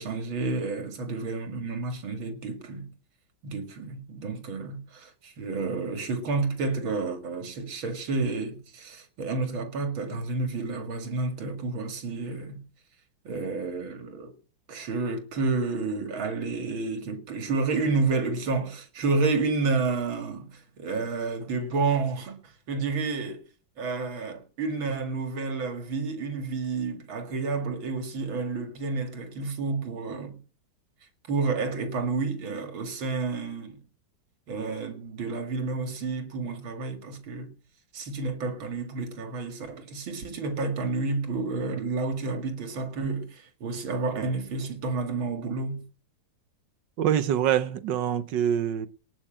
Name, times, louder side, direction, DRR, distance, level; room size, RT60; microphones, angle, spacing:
voice 1, 0.0-2.9 3.4-12.6 13.2-14.3 14.7-23.4 23.8-30.4 31.3-33.8 34.5-37.5 37.9-45.8, right 3 dB, 90° right, 2.8 m, -30 dB
voice 2, 47.0-48.9, right 9 dB, 70° right, 1.5 m, -25 dB
18.5 x 6.2 x 8.9 m
omnidirectional pair, 2.1 m